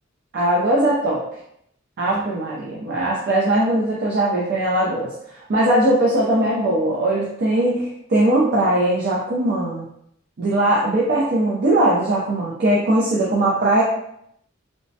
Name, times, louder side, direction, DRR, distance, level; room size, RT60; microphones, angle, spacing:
voice 1, 0.3-1.2 2.0-5.1 5.5-9.9 10.4-13.8, right 1 dB, 55° right, -5 dB, 0.5 m, -20 dB
3.1 x 2.1 x 2.7 m, 0.73 s
head